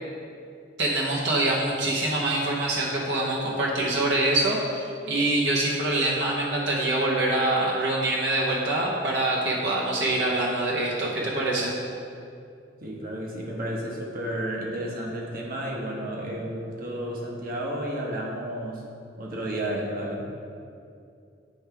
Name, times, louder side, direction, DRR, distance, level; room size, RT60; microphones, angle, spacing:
voice 1, 0.8-11.7, right 2 dB, 75° right, -4 dB, 0.9 m, -25 dB
voice 2, 12.8-18.8 19.2-20.2, right 1 dB, 55° right, -2 dB, 1.0 m, -32 dB
8.6 x 3.4 x 4.7 m, 2.5 s
head